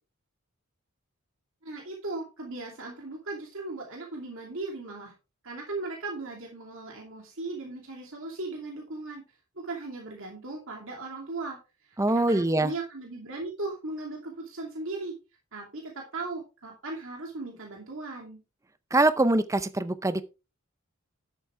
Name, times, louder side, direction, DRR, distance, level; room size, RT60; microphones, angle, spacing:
voice 1, 1.6-5.1 5.4-9.2 9.6-15.1 15.5-18.4, right 3 dB, 65° right, 2.6 m, -37 dB
voice 2, 12.0-12.7 18.9-20.2, right 2 dB, 15° right, 0.6 m, -23 dB
11.5 x 8.3 x 3.3 m
head